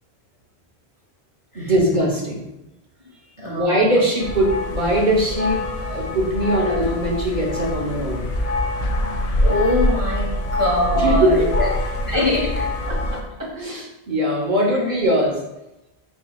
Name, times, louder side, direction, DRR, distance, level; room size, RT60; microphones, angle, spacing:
voice 1, 1.5-2.5 3.4-5.6 5.9-8.2 10.9-11.6 12.1-12.2 12.9-15.4, equal, 50° right, -3 dB, 1.0 m, -21 dB
voice 2, 3.4-3.8 9.4-11.7 12.1-12.7 14.9-15.0, left 1 dB, 30° left, -4 dB, 1.0 m, -23 dB
sound 1, 4.2-13.2, left 1 dB, 50° left, 0.5 m, -24 dB
4.5 x 4.5 x 2.3 m, 0.95 s
omnidirectional pair, 1.1 m